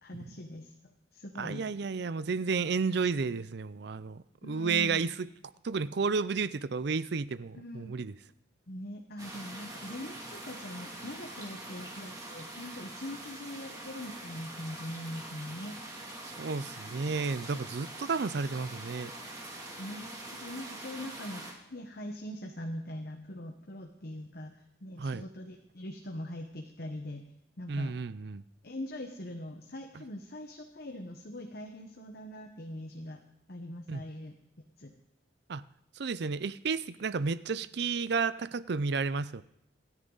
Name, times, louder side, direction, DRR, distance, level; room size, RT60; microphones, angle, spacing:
voice 1, 0.0-1.7 4.4-5.0 7.5-7.9 8.7-15.8 19.8-27.3 27.6-28.0 28.6-33.2 33.5-34.4 34.8-34.9, left 1 dB, 55° left, 3 dB, 1.1 m, -42 dB
voice 2, 1.4-5.3 5.6-8.1 16.3-19.1 25.0-25.2 27.7-28.4 33.9-34.0 35.5-35.6 36.0-39.4, right 4 dB, 60° right, 17 dB, 0.5 m, -32 dB
sound 1, 9.2-21.5, right 1 dB, 20° right, 2.7 m, -44 dB
27.0 x 10.0 x 4.0 m, 0.79 s
head